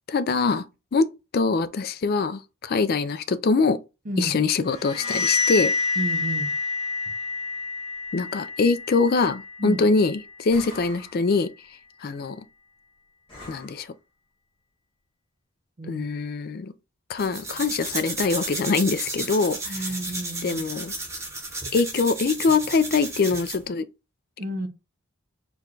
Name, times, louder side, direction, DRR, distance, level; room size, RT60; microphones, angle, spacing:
voice 1, 0.1-3.8 4.2-5.7 8.1-11.5 12.0-12.4 13.5-13.9 15.9-16.7 17.1-19.7 20.4-20.9 21.7-23.9, left 4 dB, 45° left, 0.3 m, -23 dB
sound 1, 4.6-10.3, left 4 dB, 70° left, 1.5 m, -28 dB
voice 2, 6.0-6.5 9.6-9.8 15.8-16.0 19.7-20.6 24.4-24.7, right 1 dB, 40° right, 0.6 m, -31 dB
sound 2, 9.0-9.4 10.5-11.3 13.3-13.8, left 2 dB, 25° left, 1.9 m, -44 dB
sound 3, 17.2-23.7, right 2 dB, 15° right, 0.8 m, -33 dB
4.6 x 2.3 x 3.8 m
head